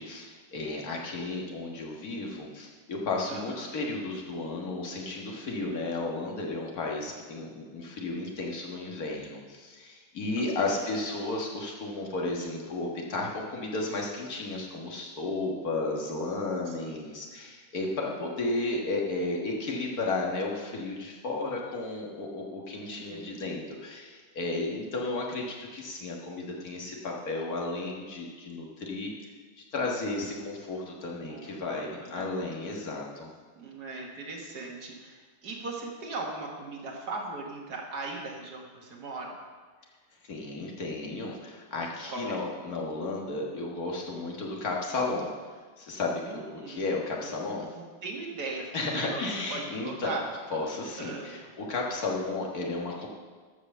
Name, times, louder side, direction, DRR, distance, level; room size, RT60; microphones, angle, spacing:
voice 1, 0.0-29.1 29.6-33.3 40.2-45.3 45.8-47.7 48.7-50.1 50.5-53.1, left 2 dB, 65° left, -1 dB, 2.1 m, -33 dB
voice 2, 3.3-3.9 10.4-10.5 10.8-11.0 16.7-17.3 22.7-23.4 31.3-32.3 33.6-39.4 42.1-42.4 46.2-46.9 47.2-47.4 47.7-50.2 51.0-51.5, right 3 dB, 80° right, -1 dB, 2.2 m, -39 dB
13.5 x 5.0 x 6.7 m, 1.5 s
omnidirectional pair, 1.7 m